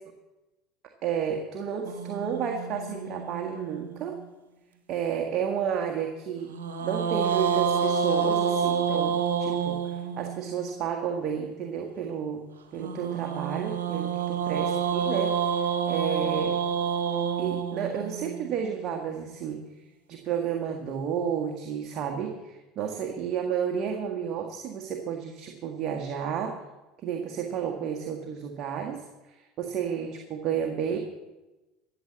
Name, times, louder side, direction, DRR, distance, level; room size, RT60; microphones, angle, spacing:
voice 1, 1.0-4.2 4.9-6.5 6.8-12.4 12.7-16.6 17.4-19.6 20.1-26.6 27.0-31.0, right 8 dB, 50° right, 3 dB, 1.6 m, -31 dB
sound 1, 1.8-4.3 6.5-10.7 12.8-19.0, right 7 dB, 85° right, 1.5 m, -28 dB
14.0 x 8.1 x 7.4 m, 1.1 s
hypercardioid pair, 75°, 0 cm